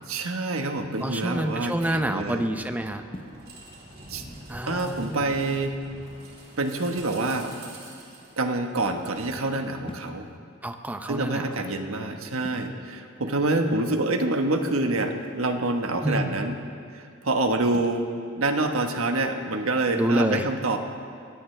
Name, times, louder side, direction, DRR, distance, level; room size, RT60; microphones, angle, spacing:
voice 1, 0.1-2.4 4.1-4.2 4.6-5.8 6.6-7.5 8.4-10.3 11.0-16.6 16.9-20.8, right 2 dB, 85° right, 5 dB, 1.3 m, -27 dB
voice 2, 1.0-3.0 4.5-5.3 10.6-11.4 16.0-16.3 19.9-20.4, right 1 dB, 10° right, 6 dB, 0.6 m, -27 dB
sound 1, 1.4-1.8 3.1-3.6 5.0-5.6 7.2-8.0 9.8-10.4 12.4-12.7 15.0-15.5 17.7-18.1, left 1 dB, 25° left, 0.8 m, -43 dB
sound 2, 1.7-9.2, right 1 dB, 50° right, 3.3 m, -47 dB
22.5 x 17.0 x 3.3 m, 2.3 s
head